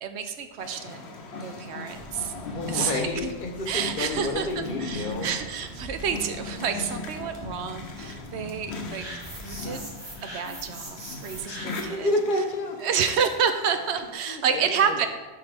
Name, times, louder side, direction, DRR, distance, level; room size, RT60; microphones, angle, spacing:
voice 1, 0.0-2.3 2.7-3.1 3.7-9.1 9.4-9.8 10.2-12.1 12.8-15.1, right 7 dB, 90° right, 8 dB, 0.9 m, -29 dB
sound 1, 0.6-14.1, left 3 dB, 80° left, 1.0 m, -39 dB
Water / Drip, 1.9-9.8, right 1 dB, 55° right, 1.2 m, -45 dB
voice 2, 2.4-5.3 11.5-12.8 14.3-15.1, left 2 dB, 55° left, 3 dB, 0.9 m, -30 dB
sound 2, 8.9-12.0, right 1 dB, 25° right, 1.1 m, -41 dB
10.5 x 3.8 x 3.4 m, 1.3 s
omnidirectional pair, 1.1 m